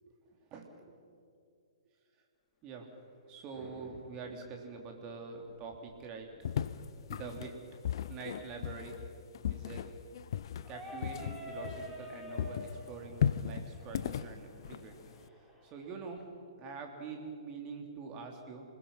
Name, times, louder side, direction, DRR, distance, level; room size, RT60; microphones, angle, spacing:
voice 1, 0.1-0.8 2.6-2.9 3.3-6.3 7.1-7.5 8.1-9.0 9.5-9.8 10.7-15.0 15.6-16.2 16.6-18.6, right 5 dB, 25° right, 2 dB, 3.4 m, -45 dB
Thunder / Rain, 2.4-15.1, left 2 dB, 20° left, 4.1 m, -64 dB
sound 1, 6.4-12.1 12.4-15.3, left 9 dB, 50° left, 0.8 m, -36 dB
sound 2, 10.6-16.2, equal, ahead, 3.6 m, -48 dB
27.5 x 21.0 x 5.7 m, 2.4 s
figure-of-eight pair, 120°, 3 cm